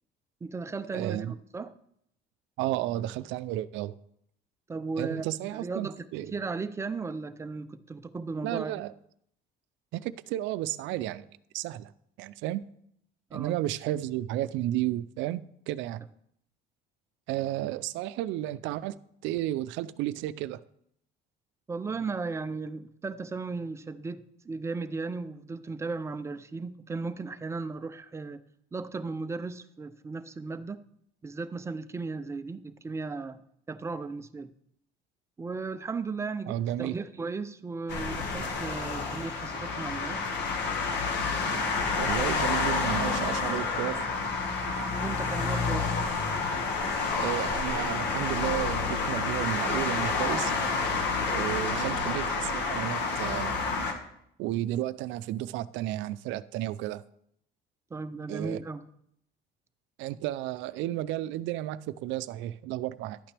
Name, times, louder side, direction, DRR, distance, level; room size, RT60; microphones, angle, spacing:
voice 1, 0.4-1.7 4.7-5.3 5.5-6.0 6.3-8.7 13.3-13.6 21.7-28.4 28.7-30.8 31.2-33.4 33.7-34.5 35.4-40.2 45.0-45.9 57.9-58.8, right 4 dB, 15° right, 0.4 m, -36 dB
voice 2, 0.9-1.3 2.6-4.0 5.0-6.3 8.4-8.9 9.9-11.3 11.5-11.9 12.2-12.6 13.3-16.0 17.3-19.0 19.2-20.6 36.5-37.0 42.0-44.0 47.2-50.5 51.3-53.6 54.4-57.0 58.3-58.6 60.0-63.2, right 14 dB, 75° right, 0.5 m, -32 dB
sound 1, 37.9-53.9, left 4 dB, 65° left, 1.6 m, -29 dB
11.5 x 8.9 x 3.3 m
cardioid pair, 155°, 19 cm